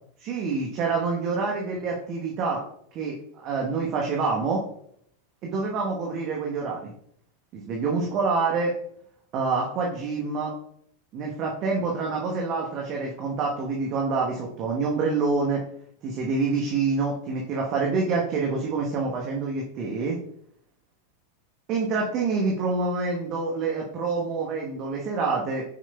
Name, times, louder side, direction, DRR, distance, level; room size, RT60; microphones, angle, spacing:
voice 1, 0.2-2.6 2.9-4.6 5.4-6.9 7.5-8.7 9.3-10.5 11.1-15.6 16.0-20.2 21.7-25.6, right 4 dB, 35° right, -1 dB, 1.1 m, -27 dB
7.8 x 6.2 x 2.2 m, 0.68 s
figure-of-eight pair, 90°, 0 cm